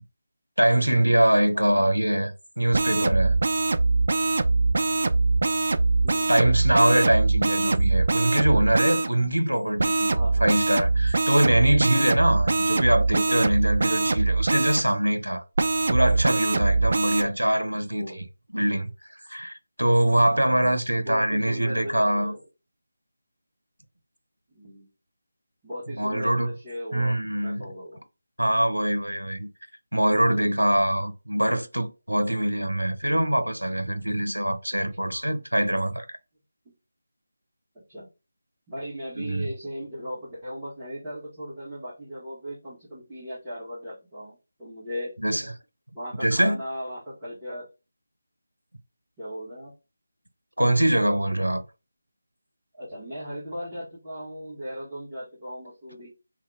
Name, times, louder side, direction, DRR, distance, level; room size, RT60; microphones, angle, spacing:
voice 1, 0.6-2.3 2.6-3.4 6.3-15.4 15.9-18.1 18.5-18.9 19.3-22.3 26.0-26.5 26.9-27.6 28.4-29.5 29.9-36.2 39.2-39.4 45.2-45.4 46.2-46.6 50.6-51.6, right 1 dB, 90° right, 0.6 m, -23 dB
voice 2, 1.5-2.0 6.0-6.3 10.1-10.5 13.3-13.4 17.9-18.2 20.9-22.4 24.5-24.9 25.6-28.0 29.0-29.2 37.9-38.1 38.7-45.1 45.9-47.7 49.2-49.7 52.7-56.1, equal, 10° right, 1.4 m, -37 dB
sound 1, 2.7-9.1 9.8-14.8 15.5-17.2, right 3 dB, 50° right, 0.3 m, -23 dB
2.8 x 2.1 x 3.9 m
figure-of-eight pair, 160°, 0 cm